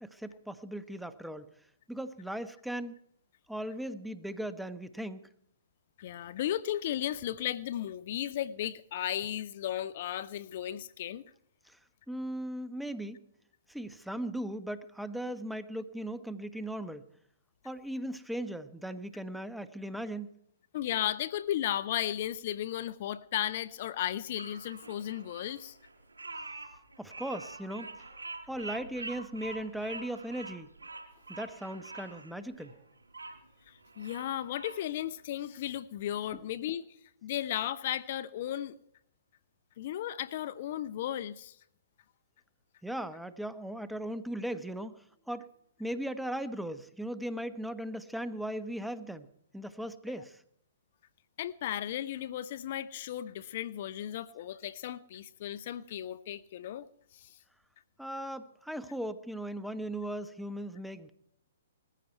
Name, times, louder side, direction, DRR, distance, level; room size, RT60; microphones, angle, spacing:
voice 1, 0.0-1.5 1.9-3.0 3.5-5.2 11.6-11.8 12.1-13.2 13.7-17.1 17.6-20.4 27.0-27.9 28.5-30.7 31.3-32.8 42.8-45.5 45.8-49.3 49.5-50.4 58.0-61.1, right 1 dB, ahead, 1.1 m, -38 dB
voice 2, 6.0-11.2 20.7-25.8 33.7-36.9 37.2-38.8 39.8-41.6 51.4-56.9 57.1-57.4, left 11 dB, 50° left, 0.7 m, -35 dB
Bird vocalization bird call bird song, 24.4-33.4 33.8-34.8, right 3 dB, 90° right, 4.9 m, -45 dB
20.5 x 15.0 x 4.5 m
figure-of-eight pair, 125°, 0 cm